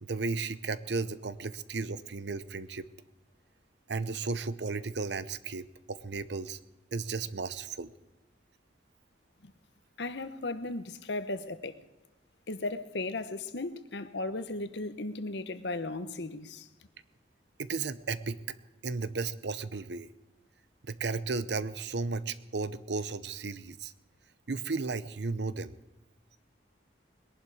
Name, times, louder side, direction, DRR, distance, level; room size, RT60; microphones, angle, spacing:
voice 1, 0.0-2.9 3.9-6.6 6.9-7.9 17.6-18.4 18.8-20.1 20.8-23.9 24.5-25.8, right 4 dB, 70° right, 0.7 m, -34 dB
voice 2, 10.0-11.8 12.5-16.7, left 2 dB, 70° left, 1.0 m, -36 dB
21.0 x 11.5 x 4.9 m
head